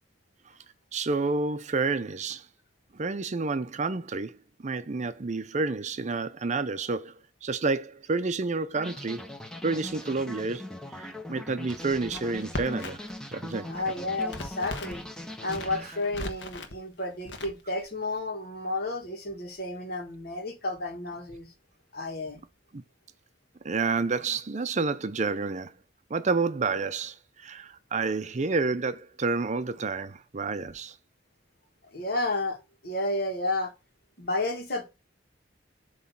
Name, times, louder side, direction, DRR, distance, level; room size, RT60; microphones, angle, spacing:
voice 1, 0.9-2.5 2.9-4.4 4.6-7.1 7.4-9.2 9.6-13.7 22.7-22.8 23.6-25.7 26.1-30.9, right 4 dB, 40° right, 0.6 m, -29 dB
sound 1, 8.7-16.4, left 1 dB, 5° left, 0.9 m, -41 dB
Crackle, 11.7-13.2 13.5-15.0 15.4-16.8 17.3-17.9, left 1 dB, 90° left, 1.2 m, -38 dB
voice 2, 13.7-15.0 15.4-21.5 21.9-22.4 31.9-32.6 32.8-33.7 34.2-34.8, left 2 dB, 60° left, 1.9 m, -31 dB
7.8 x 3.1 x 5.8 m
head